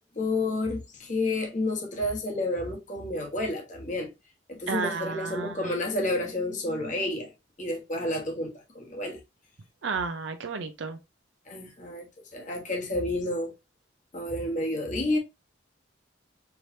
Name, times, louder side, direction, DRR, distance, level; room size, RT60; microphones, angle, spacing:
voice 1, 0.1-4.1 4.5-7.3 7.6-9.2 11.5-13.5 14.1-15.2, left 2 dB, 40° left, 1.2 m, -30 dB
voice 2, 4.7-5.7 9.8-11.0, right 4 dB, 80° right, 0.5 m, -32 dB
4.7 x 3.2 x 2.7 m
head